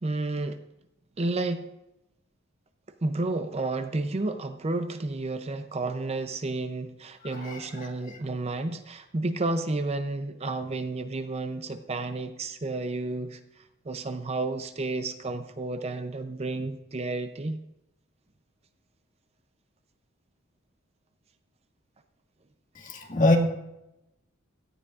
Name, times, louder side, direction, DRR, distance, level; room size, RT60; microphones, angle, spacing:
voice 1, 0.0-0.6 1.2-1.7 3.0-17.6, right 2 dB, 30° right, 9 dB, 0.5 m, -31 dB
voice 2, 7.4-7.9 22.8-23.4, left 2 dB, 40° left, 2 dB, 1.8 m, -24 dB
17.0 x 12.5 x 2.5 m, 0.91 s
head